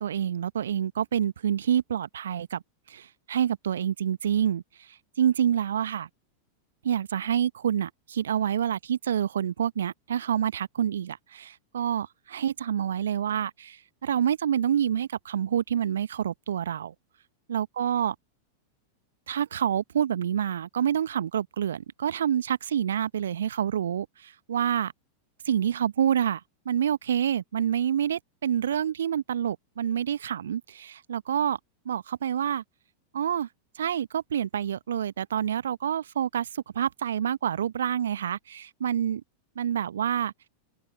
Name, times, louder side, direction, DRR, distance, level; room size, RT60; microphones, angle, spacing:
voice 1, 0.0-2.6 2.9-4.6 5.2-6.1 6.8-16.9 17.5-18.1 19.3-24.9 25.5-31.6 31.8-32.6 33.1-33.5 33.7-39.2 39.5-40.3, right 9 dB, 65° right, 1.3 m, -27 dB
figure-of-eight pair, 90°, 0 cm